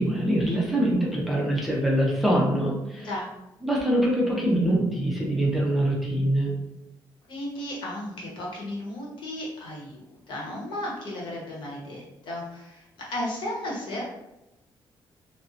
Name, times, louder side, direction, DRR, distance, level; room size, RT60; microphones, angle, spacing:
voice 1, 0.0-3.1 3.6-6.6, right 1 dB, ahead, -4 dB, 0.5 m, -24 dB
voice 2, 7.3-14.0, left 1 dB, 70° left, -4 dB, 0.9 m, -34 dB
2.6 x 2.0 x 2.4 m, 0.94 s
cardioid pair, 130°, 9 cm